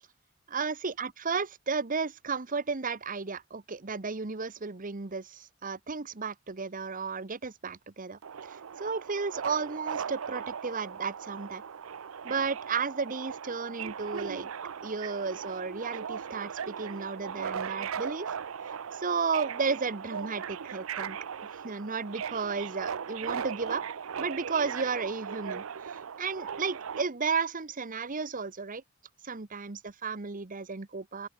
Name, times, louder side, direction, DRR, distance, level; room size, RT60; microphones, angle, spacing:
voice 1, 0.5-8.2 8.5-11.6 12.2-14.5 14.8-18.3 18.9-21.2 21.6-23.8 24.2-28.8 29.2-31.3, right 5 dB, 40° right, 1.0 m, -33 dB
Subway metro underground, 8.2-27.0, right 7 dB, 80° right, 0.6 m, -38 dB
open air
head